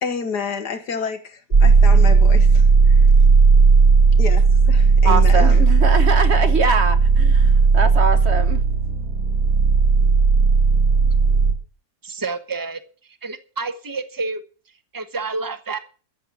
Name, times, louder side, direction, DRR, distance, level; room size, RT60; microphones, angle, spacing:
voice 1, 0.0-3.1 4.2-5.6, left 5 dB, 85° left, 2.5 m, -29 dB
sound 1, 1.5-11.5, right 4 dB, 60° right, 3.0 m, -14 dB
voice 2, 5.0-8.6, right 4 dB, 45° right, 1.4 m, -23 dB
voice 3, 12.0-12.8 13.2-14.4 14.9-15.8, right 3 dB, 15° right, 1.0 m, -29 dB
13.5 x 7.5 x 8.5 m
omnidirectional pair, 1.7 m